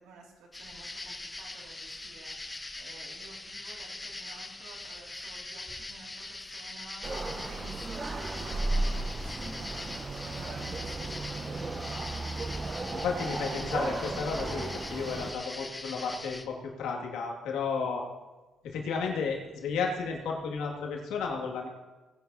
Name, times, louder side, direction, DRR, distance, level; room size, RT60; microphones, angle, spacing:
voice 1, 0.0-12.4, right 3 dB, 85° right, -1 dB, 2.5 m, -52 dB
sound 1, 0.5-16.5, left 2 dB, 20° left, 1.1 m, -42 dB
sound 2, 7.0-15.3, right 2 dB, 35° right, 0.9 m, -34 dB
voice 2, 12.9-18.0 18.6-21.7, left 5 dB, 85° left, -1 dB, 2.3 m, -33 dB
18.5 x 10.5 x 2.8 m, 1.2 s
cardioid pair, 75°, 0 cm